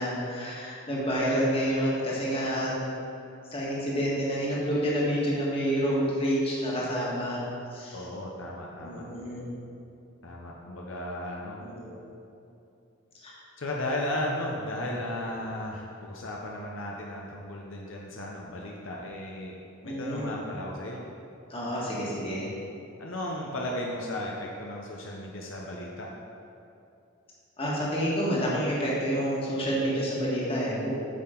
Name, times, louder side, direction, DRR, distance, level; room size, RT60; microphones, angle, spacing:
voice 1, 0.0-2.8 3.5-7.4 7.7-8.0 8.8-9.5 11.6-12.0 13.1-13.3 19.8-20.3 21.5-22.5 27.6-30.9, equal, 30° left, -5 dB, 1.6 m, -28 dB
voice 2, 7.9-9.1 10.2-11.6 13.6-19.6 19.8-21.0 23.0-26.1, left 1 dB, 70° left, -2 dB, 0.7 m, -35 dB
8.5 x 5.7 x 3.8 m, 2.7 s
head